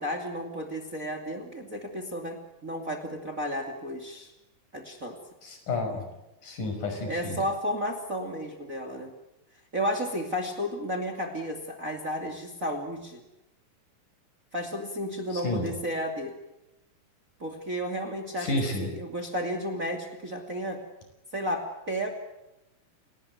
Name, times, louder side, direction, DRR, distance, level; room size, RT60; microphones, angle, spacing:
voice 1, 0.0-4.3 4.7-5.2 7.1-9.1 9.7-13.2 14.5-16.3 17.4-20.8 21.3-22.1, equal, 25° right, 5 dB, 2.6 m, -33 dB
voice 2, 5.4-6.0 6.4-7.4 15.3-15.7 18.4-18.9, left 2 dB, 65° left, 5 dB, 7.2 m, -30 dB
29.5 x 19.0 x 9.4 m, 0.96 s
omnidirectional pair, 4.0 m